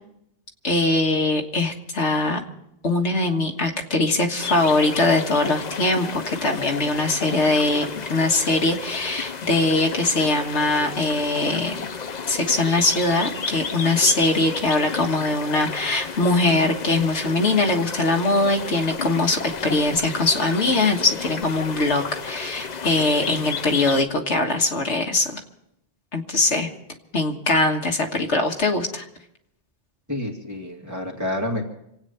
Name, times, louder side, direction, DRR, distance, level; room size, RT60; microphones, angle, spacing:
voice 1, 0.6-2.4 2.8-11.9 12.3-25.4 26.1-26.7 27.1-29.0, left 2 dB, 85° left, 3 dB, 1.8 m, -22 dB
sound 1, 4.4-24.0, left 5 dB, 45° left, 0.8 m, -33 dB
voice 2, 30.1-31.6, left 1 dB, 15° right, -1 dB, 2.6 m, -28 dB
27.0 x 9.1 x 5.5 m, 0.79 s
omnidirectional pair, 1.2 m